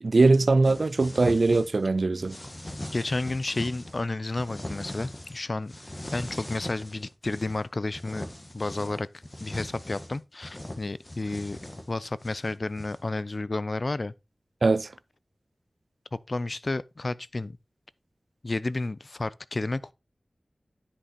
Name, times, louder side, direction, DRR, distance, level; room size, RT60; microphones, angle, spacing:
voice 1, 0.0-2.4 14.6-14.9, right 3 dB, 70° right, 0.5 m, -21 dB
sound 1, 0.6-1.9 2.2-4.0 4.4-5.4 5.7-7.6 7.9-13.1, left 1 dB, 30° left, 1.6 m, -40 dB
voice 2, 2.9-5.7 6.1-8.3 8.5-9.1 9.4-11.6 11.9-14.1 16.1-17.6 18.4-19.9, left 2 dB, 55° left, 0.5 m, -31 dB
9.9 x 5.4 x 4.2 m
wide cardioid pair, 50°, 0 cm